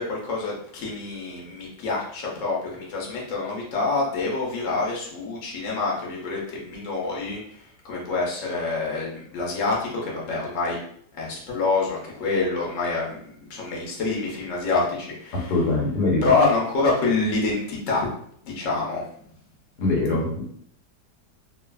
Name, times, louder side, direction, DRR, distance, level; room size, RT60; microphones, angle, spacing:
voice 1, 0.0-10.8 11.1-15.5 16.2-18.1 18.4-19.0, left 3 dB, 60° left, -3 dB, 1.0 m, -26 dB
voice 2, 15.3-16.2 19.8-20.4, left 2 dB, 80° left, -2 dB, 1.3 m, -23 dB
2.7 x 2.4 x 2.2 m, 0.64 s
omnidirectional pair, 1.7 m